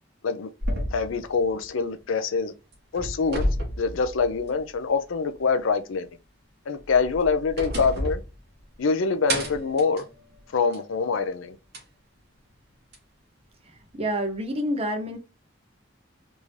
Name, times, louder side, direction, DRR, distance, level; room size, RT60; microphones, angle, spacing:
sound 1, 0.6-2.4 2.7-4.7 5.1-5.2 6.8-8.9 9.3-11.0 11.7-11.8 12.9-13.0, equal, 55° right, 1.3 m, -31 dB
voice 1, 0.9-2.5 2.9-3.4 3.8-6.1 6.7-8.2 8.8-10.1 10.5-11.6, left 5 dB, 85° left, 0.5 m, -25 dB
voice 2, 13.6-15.2, equal, 30° right, 0.8 m, -28 dB
3.6 x 2.7 x 3.1 m
head